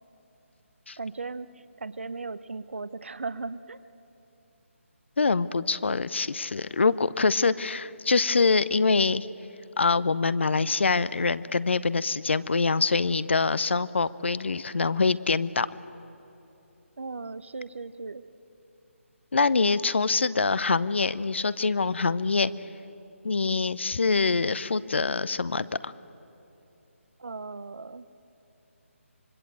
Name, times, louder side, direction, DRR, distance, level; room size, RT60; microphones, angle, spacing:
voice 1, 1.0-1.5 1.8-3.8 17.0-18.2 27.2-28.0, right 4 dB, 60° right, 14 dB, 0.9 m, -37 dB
voice 2, 5.2-9.3 9.8-15.7 19.3-22.5 23.2-25.9, left 4 dB, 60° left, 17 dB, 0.7 m, -24 dB
25.5 x 22.0 x 7.9 m, 2.9 s
figure-of-eight pair, 150°, 7 cm